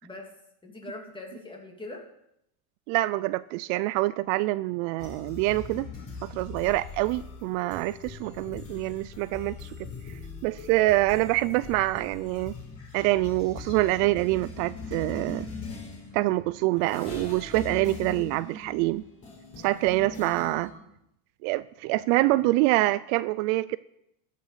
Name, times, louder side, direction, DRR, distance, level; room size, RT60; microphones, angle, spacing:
voice 1, 0.6-2.0 8.2-8.6 20.0-20.9, left 2 dB, 10° left, 1 dB, 2.4 m, -43 dB
voice 2, 2.9-5.9 6.2-9.7 10.1-12.5 12.9-15.5 16.1-19.0 19.6-20.7 21.4-23.8, right 19 dB, 65° right, 17 dB, 0.5 m, -26 dB
sound 1, 5.0-20.7, left 4 dB, 30° left, 5.2 m, -41 dB
15.0 x 6.7 x 6.7 m, 0.80 s
supercardioid pair, 135°, 44 cm